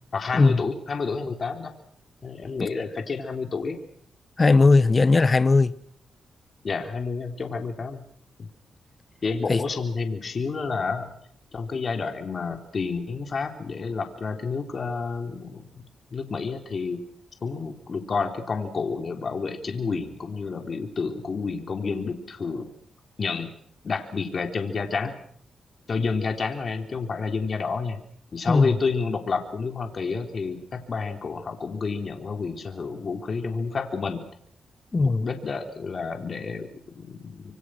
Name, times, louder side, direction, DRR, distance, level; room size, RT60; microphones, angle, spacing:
voice 1, 0.1-1.8 2.2-3.8 6.6-8.0 8.4-8.5 9.2-11.2 11.5-15.8 16.1-17.0 17.4-22.7 23.2-23.5 23.8-25.2 25.9-28.0 28.3-34.2 35.0-37.5, left 4 dB, 50° left, 3.7 m, -30 dB
voice 2, 4.4-5.7 9.5-9.6 28.5-28.7 34.9-35.2, left 3 dB, 35° left, 1.0 m, -18 dB
26.5 x 23.5 x 6.4 m
cardioid pair, 70°, 0 cm